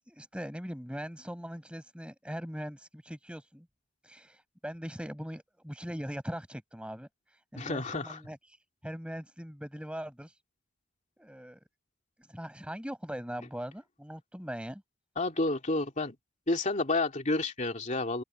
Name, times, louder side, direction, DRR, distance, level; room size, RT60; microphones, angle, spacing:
voice 1, 0.0-3.7 4.0-7.1 7.5-8.4 8.8-10.3 11.2-11.6 12.3-14.8, equal, 5° right, 6.0 m, -40 dB
voice 2, 7.6-8.2 15.2-16.1 16.5-18.2, left 2 dB, 35° left, 2.8 m, -30 dB
open air
head